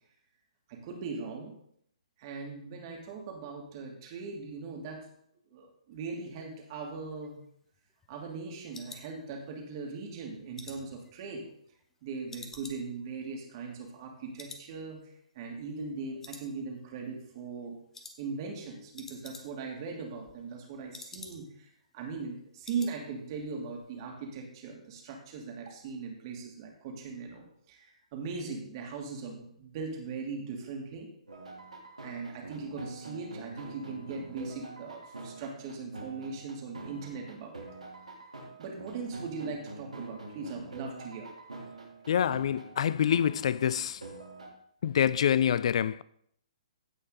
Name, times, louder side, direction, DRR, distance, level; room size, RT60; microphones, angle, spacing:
voice 1, 0.7-1.5 2.2-5.0 5.5-7.4 8.1-11.5 12.0-15.0 15.3-17.8 18.2-21.7 21.9-31.1 32.0-37.7 38.6-41.3, right 4 dB, 40° right, 2.9 m, -39 dB
sound 1, 7.0-9.8 10.2-11.9 12.3-14.1 14.4-14.7 15.0-15.1 15.5-16.0 16.2-17.0 17.3-17.6 17.9-18.2 18.5-18.6 18.8-19.8 20.1-21.7 22.0-22.1 22.4-23.0 23.3-23.5 23.8-23.9, left 3 dB, 10° left, 1.0 m, -50 dB
sound 2, 31.3-44.5, right 2 dB, 80° right, 3.4 m, -45 dB
voice 2, 42.1-44.0 44.8-46.0, left 9 dB, 55° left, 0.3 m, -26 dB
16.0 x 5.5 x 4.0 m
figure-of-eight pair, 130°, 4 cm